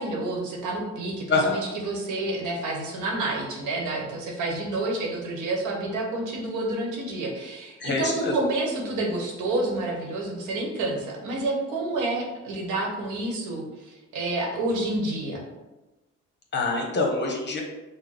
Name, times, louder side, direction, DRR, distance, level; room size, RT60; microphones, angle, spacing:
voice 1, 0.0-15.4, right 2 dB, 85° right, 0 dB, 1.1 m, -29 dB
voice 2, 1.3-1.6 7.8-8.4 16.5-17.6, left 3 dB, 35° left, 0 dB, 1.0 m, -25 dB
5.5 x 2.1 x 3.4 m, 1.1 s
cardioid pair, 90°, 30 cm